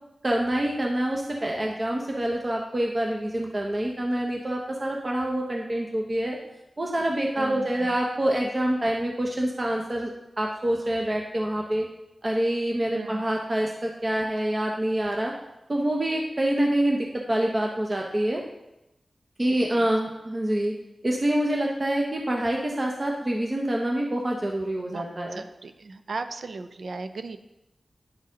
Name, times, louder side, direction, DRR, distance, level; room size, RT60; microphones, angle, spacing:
voice 1, 0.2-6.4 6.8-10.1 10.4-11.9 12.2-15.3 15.7-18.4 19.4-20.7 21.0-25.4, right 1 dB, 40° right, 0 dB, 0.9 m, -26 dB
voice 2, 7.4-7.9 12.9-13.2 19.5-19.9 24.9-25.1 25.3-27.4, right 3 dB, 75° right, 9 dB, 0.5 m, -37 dB
10.0 x 4.1 x 3.8 m, 0.92 s
cardioid pair, 40°, 0 cm